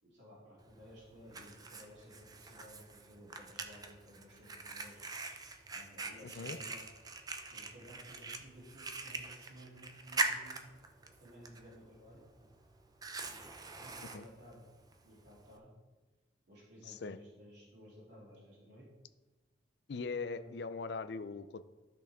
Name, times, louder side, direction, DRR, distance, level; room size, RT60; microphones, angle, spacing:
voice 1, 0.0-5.0 5.7-6.9 7.5-10.7 11.2-12.5 13.3-13.4 13.8-14.6 15.0-15.7 16.5-18.9 20.2-20.6, equal, 65° right, -7 dB, 3.3 m, -56 dB
Fire, 0.6-15.6, right 3 dB, 20° right, 0.5 m, -43 dB
voice 2, 6.2-6.6 14.1-14.2 16.9-17.2 19.9-21.6, left 4 dB, 60° left, 13 dB, 0.4 m, -40 dB
12.5 x 6.1 x 3.6 m, 1.2 s
head